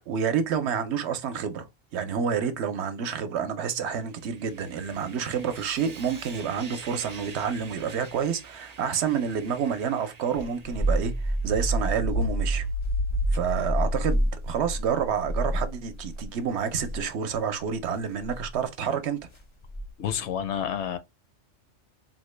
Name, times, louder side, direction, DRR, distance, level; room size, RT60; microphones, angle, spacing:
voice 1, 0.1-1.7 1.9-12.7 13.3-19.2, right 7 dB, 70° right, 0.8 m, -29 dB
Sawing, 4.0-11.5, right 4 dB, 45° right, 0.6 m, -47 dB
sound 1, 10.4-16.2 16.7-17.0 18.2-18.5 19.7-20.1, right 1 dB, 45° left, 0.4 m, -28 dB
voice 2, 20.0-21.0, left 9 dB, 70° left, 0.8 m, -29 dB
3.9 x 2.1 x 3.1 m
omnidirectional pair, 1.2 m